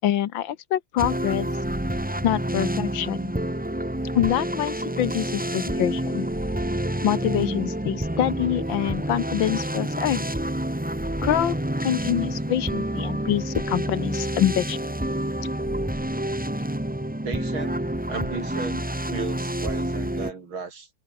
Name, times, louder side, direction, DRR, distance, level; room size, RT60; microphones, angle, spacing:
voice 1, 0.0-1.5 2.2-3.3 4.2-6.3 7.0-10.3 11.2-11.6 11.8-14.8, left 11 dB, 75° left, 1.7 m, -25 dB
sound 1, 1.0-20.3, right 1 dB, 5° right, 1.4 m, -28 dB
voice 2, 17.2-17.8 18.1-20.9, right 5 dB, 85° right, 4.1 m, -35 dB
omnidirectional pair, 2.2 m